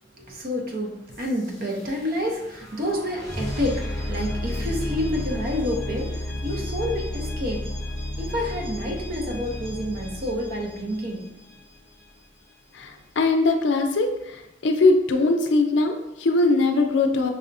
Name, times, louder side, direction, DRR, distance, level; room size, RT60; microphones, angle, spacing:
voice 1, 0.1-7.7 8.2-11.4, left 1 dB, 55° right, 2 dB, 0.6 m, -29 dB
sound 1, 1.1-11.9, left 1 dB, 5° left, 0.8 m, -32 dB
voice 2, 12.7-17.3, left 3 dB, 75° left, 4 dB, 0.4 m, -21 dB
5.4 x 2.0 x 2.6 m, 0.88 s
head